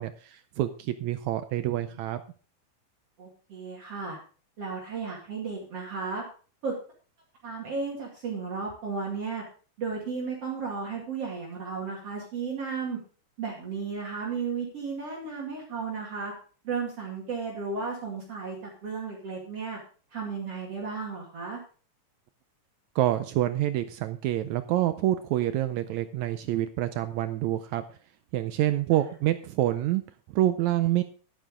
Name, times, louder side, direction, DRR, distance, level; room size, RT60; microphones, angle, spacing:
voice 1, 0.0-2.2 23.0-27.8 28.3-30.0 30.3-31.0, right 13 dB, 80° right, 10 dB, 1.6 m, -27 dB
voice 2, 3.2-4.2 4.6-6.2 6.6-6.7 7.4-9.4 9.8-13.0 13.4-16.3 16.6-19.8 20.1-21.6 28.9-29.1, right 5 dB, 50° right, -3 dB, 3.1 m, -34 dB
11.5 x 10.0 x 3.7 m, 0.39 s
omnidirectional pair, 3.9 m